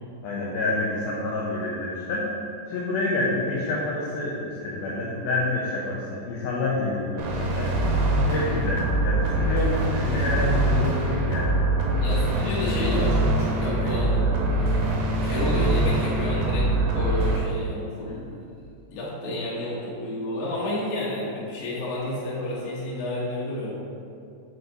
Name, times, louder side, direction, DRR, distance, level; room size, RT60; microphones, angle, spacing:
voice 1, 0.2-2.3 2.7-11.6, left 2 dB, 80° left, -5 dB, 2.2 m, -28 dB
sound 1, 7.2-17.4, right 1 dB, 75° right, 2.3 m, -23 dB
voice 2, 12.0-18.4 18.9-23.7, left 1 dB, 65° left, -7 dB, 2.8 m, -30 dB
8.0 x 4.2 x 4.0 m, 2.5 s
omnidirectional pair, 5.1 m